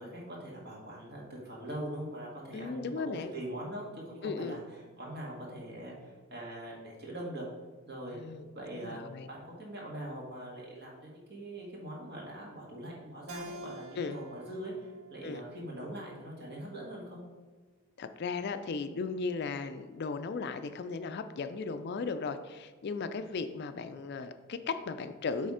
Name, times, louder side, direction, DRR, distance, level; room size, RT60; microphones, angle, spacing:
voice 1, 0.0-3.0 3.3-4.6 5.0-7.5 7.9-8.2 8.5-9.0 9.3-17.2, right 1 dB, 50° right, -3 dB, 1.8 m, -42 dB
voice 2, 2.5-3.3 4.2-4.6 8.1-8.5 8.7-9.3 14.0-14.2 15.2-15.4 18.0-25.5, left 4 dB, 50° left, 9 dB, 0.4 m, -36 dB
Keyboard (musical), 13.3-16.5, right 2 dB, 80° right, 0.7 m, -49 dB
8.4 x 3.3 x 4.9 m, 1.3 s
head